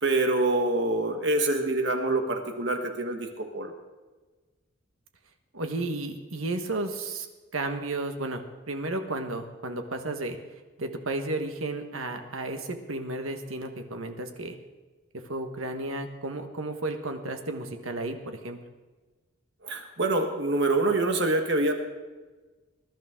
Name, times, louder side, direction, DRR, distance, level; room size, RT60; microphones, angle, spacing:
voice 1, 0.0-3.7 19.6-21.7, right 2 dB, 55° right, 4 dB, 1.5 m, -26 dB
voice 2, 5.5-7.3 7.5-10.4 10.8-14.6 15.2-18.6, right 2 dB, 80° right, 5 dB, 1.5 m, -33 dB
20.5 x 12.0 x 3.8 m, 1.3 s
head